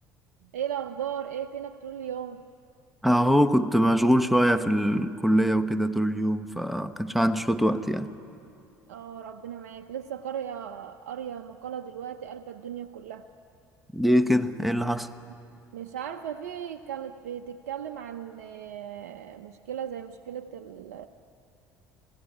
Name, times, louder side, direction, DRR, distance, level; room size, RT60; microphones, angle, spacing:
voice 1, 0.4-2.4 8.9-13.3 15.7-21.1, right 9 dB, 85° right, 0.7 m, -36 dB
voice 2, 3.0-8.1 13.9-15.1, equal, ahead, 1.2 m, -23 dB
26.5 x 17.0 x 9.8 m
hypercardioid pair, 70°, 9 cm